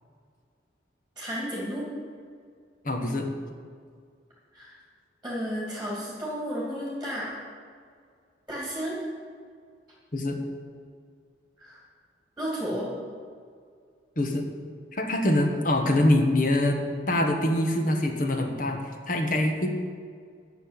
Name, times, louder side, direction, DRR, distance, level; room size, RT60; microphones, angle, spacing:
voice 1, 1.2-1.9 4.5-4.7 5.2-7.4 8.5-9.0 11.6-11.8 12.4-12.9, equal, 5° right, -6 dB, 2.6 m, -32 dB
voice 2, 2.8-3.3 10.1-10.4 14.2-14.4 14.9-16.8 17.1-19.7, left 1 dB, 45° left, 4 dB, 1.3 m, -24 dB
11.0 x 6.3 x 9.0 m, 2.1 s
head